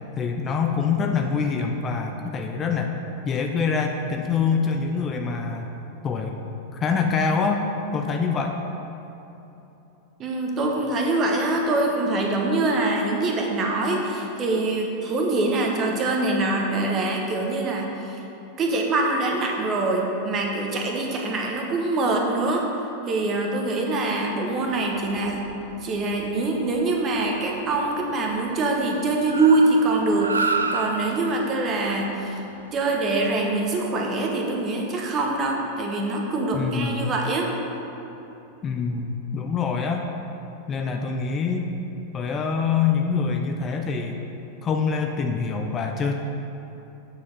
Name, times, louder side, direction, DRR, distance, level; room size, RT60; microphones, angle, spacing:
voice 1, 0.2-2.9 3.3-5.7 6.0-6.3 6.7-7.7 7.9-8.6 36.5-37.1 38.6-40.1 40.7-41.7 42.1-44.2 44.6-46.1, left 5 dB, 25° left, 3 dB, 0.5 m, -25 dB
voice 2, 10.2-18.2 18.6-22.7 23.1-25.4 25.8-32.4 32.7-37.5, right 2 dB, 30° right, 1 dB, 1.1 m, -24 dB
Car, 24.5-34.0, right 3 dB, 80° right, 0.4 m, -34 dB
8.5 x 4.8 x 5.4 m, 3.0 s
figure-of-eight pair, 90°, 0 cm